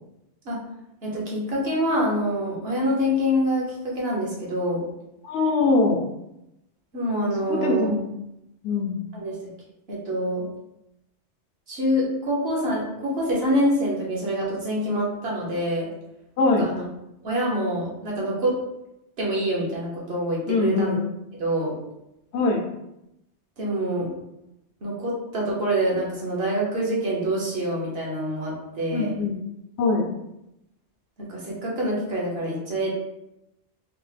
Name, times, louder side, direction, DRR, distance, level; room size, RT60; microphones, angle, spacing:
voice 1, 1.0-4.8 6.9-7.9 9.1-9.4 9.9-10.4 11.7-15.9 16.6-16.8 17.2-18.5 19.2-21.0 21.3-21.7 23.6-24.1 24.8-29.1 31.2-32.9, equal, 60° right, -4 dB, 1.2 m, -26 dB
voice 2, 5.2-6.0 7.5-8.1 8.6-9.0 16.4-16.7 20.5-21.0 22.3-22.6 28.9-29.4 29.8-30.1, left 3 dB, 75° left, 2 dB, 0.8 m, -22 dB
3.4 x 2.1 x 3.2 m, 0.86 s
omnidirectional pair, 1.2 m